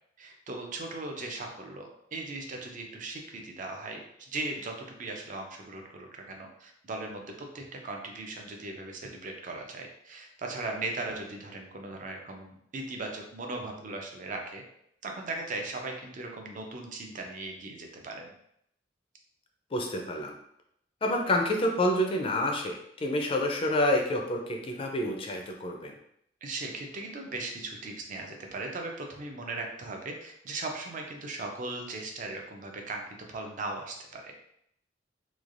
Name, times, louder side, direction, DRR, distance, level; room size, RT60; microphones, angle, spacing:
voice 1, 0.2-14.6 15.0-18.3 26.4-33.0 33.3-34.5, right 2 dB, 45° right, 2 dB, 0.5 m, -38 dB
voice 2, 19.7-20.3 21.0-25.9, left 1 dB, 30° left, 2 dB, 0.4 m, -28 dB
3.1 x 2.3 x 2.5 m, 0.73 s
head